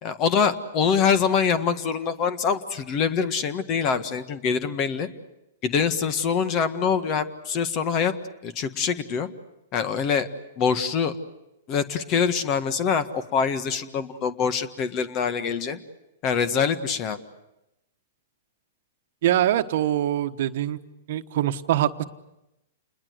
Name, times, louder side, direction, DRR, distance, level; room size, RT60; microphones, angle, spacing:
voice 1, 0.0-5.1 5.6-8.1 8.4-9.3 9.7-10.3 10.6-11.1 11.7-15.8 16.2-17.2, left 6 dB, 35° left, 12 dB, 1.6 m, -24 dB
voice 2, 19.2-20.8 21.1-22.0, right 12 dB, 60° right, 10 dB, 1.2 m, -23 dB
28.5 x 21.0 x 8.0 m, 0.90 s
hypercardioid pair, 130°, 0 cm